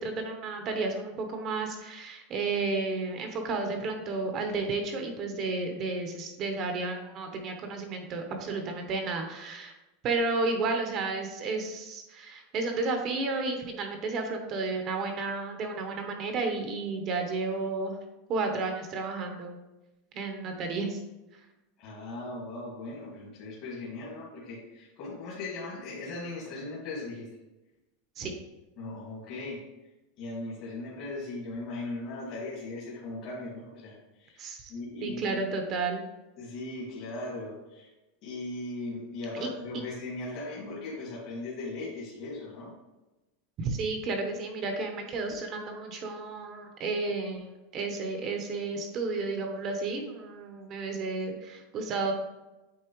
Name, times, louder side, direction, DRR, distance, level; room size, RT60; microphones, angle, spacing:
voice 1, 0.0-9.7 10.0-18.0 18.3-19.6 20.1-21.0 28.2-28.3 34.4-34.7 35.0-36.0 39.3-39.5 43.6-52.1, right 3 dB, 30° right, 4 dB, 0.9 m, -32 dB
voice 2, 21.8-27.3 28.8-29.6 30.2-35.2 36.4-37.9 38.2-42.7, left 2 dB, 45° left, -5 dB, 1.9 m, -38 dB
8.6 x 4.2 x 3.1 m, 1.0 s
supercardioid pair, 160°, 0 cm